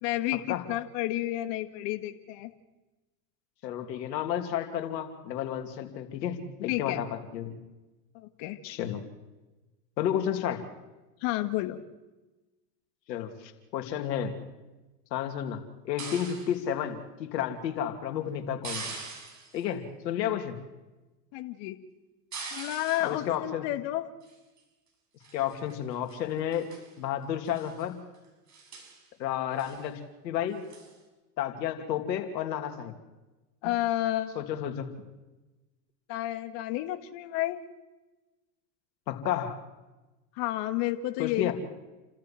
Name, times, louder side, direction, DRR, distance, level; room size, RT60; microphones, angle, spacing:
voice 1, 0.0-2.5 6.7-7.0 8.1-8.6 11.2-11.8 21.3-21.8 22.5-24.1 33.6-34.4 36.1-37.6 40.4-41.5, left 15 dB, 60° left, 8 dB, 1.9 m, -31 dB
voice 2, 3.6-7.6 8.6-9.0 10.0-10.6 13.1-14.3 15.1-18.9 19.5-20.6 23.0-23.7 25.3-26.7 27.0-28.0 29.2-30.6 31.4-32.9 34.3-34.9 39.1-39.6 41.2-41.5, left 10 dB, 85° left, 5 dB, 3.0 m, -31 dB
sound 1, 16.0-16.6 18.6-19.6 22.3-23.2 24.2-24.6 25.2-25.8 26.1-26.2 26.5-26.9 27.4-27.8 28.1-28.2 28.5-29.0 29.6-29.8 30.7-31.0, right 4 dB, 35° right, 7.2 m, -42 dB
29.5 x 13.5 x 7.6 m, 1.1 s
hypercardioid pair, 95°, 49 cm